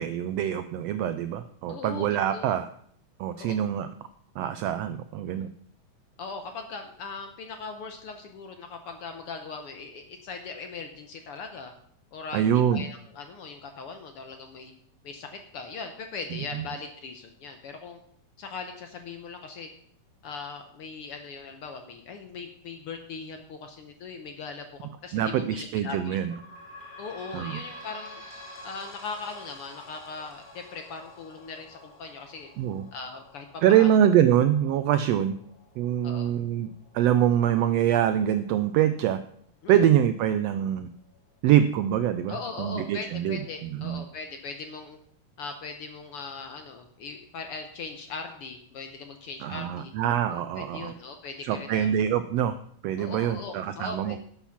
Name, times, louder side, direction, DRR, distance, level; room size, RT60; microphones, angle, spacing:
voice 1, 0.0-2.7 3.2-3.9 4.4-5.5 12.3-12.8 16.5-16.7 25.1-26.3 27.3-27.6 32.6-32.8 33.6-35.4 35.8-39.2 39.7-40.9 41.4-44.0 49.4-50.9 51.4-52.6 52.8-54.2, right 10 dB, 80° right, 11 dB, 1.4 m, -24 dB
voice 2, 1.7-2.6 3.4-3.5 6.2-11.7 12.1-14.7 15.0-18.0 18.4-19.7 20.2-26.2 27.0-28.2 28.6-32.5 32.9-33.9 36.0-36.3 39.6-39.8 42.3-45.0 45.4-49.9 50.6-51.9 53.0-54.2, left 4 dB, 65° left, 5 dB, 1.5 m, -39 dB
sound 1, 26.1-39.2 39.8-39.9 40.2-40.3 41.1-41.2, left 1 dB, 30° left, 3.9 m, -49 dB
11.5 x 7.3 x 5.8 m, 0.64 s
omnidirectional pair, 3.4 m